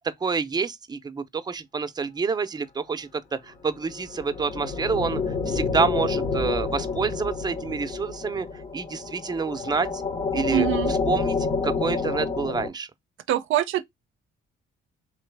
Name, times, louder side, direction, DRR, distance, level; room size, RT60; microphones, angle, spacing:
voice 1, 0.2-5.2 5.5-10.0 10.3-11.4 11.6-12.9, right 5 dB, 20° right, 0.6 m, -28 dB
sound 1, 3.8-12.7, left 4 dB, 40° left, 1.1 m, -28 dB
voice 2, 10.5-10.9 13.3-13.8, right 12 dB, 75° right, 0.5 m, -24 dB
3.8 x 3.2 x 3.3 m
cardioid pair, 100°, 20 cm